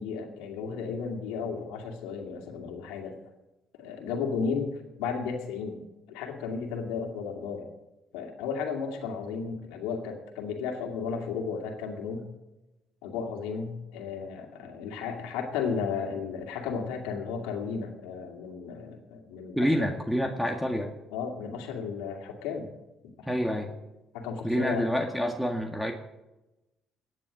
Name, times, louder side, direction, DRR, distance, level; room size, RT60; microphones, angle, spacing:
voice 1, 0.0-3.1 3.8-5.8 6.1-7.7 8.1-12.2 13.0-19.9 21.1-22.7 23.2-23.3 24.1-24.9, left 5 dB, 90° left, 3 dB, 2.3 m, -34 dB
voice 2, 19.6-20.9 23.3-23.7 24.4-25.9, equal, ahead, 3 dB, 1.8 m, -27 dB
16.0 x 9.6 x 5.1 m, 0.99 s
supercardioid pair, 65°, 0 cm